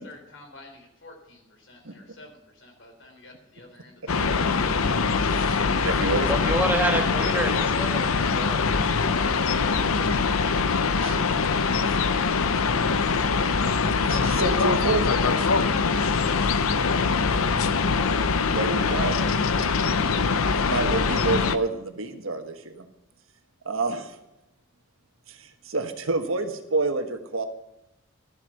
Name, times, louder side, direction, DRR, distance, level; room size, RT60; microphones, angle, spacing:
voice 1, 0.0-4.4, left 2 dB, 60° left, 3 dB, 3.5 m, -48 dB
sound 1, 4.1-21.6, left 4 dB, 90° left, 0.7 m, -23 dB
voice 2, 5.2-6.3 11.0-11.2 11.9-12.0 14.1-15.1 18.5-19.2 19.7-19.8 20.5-22.9 23.6-24.2 25.3-27.5, right 3 dB, 80° right, 6 dB, 1.4 m, -28 dB
voice 3, 6.3-8.6 9.1-9.3, right 1 dB, 10° right, 3 dB, 1.5 m, -28 dB
13.0 x 8.0 x 6.4 m, 0.90 s
head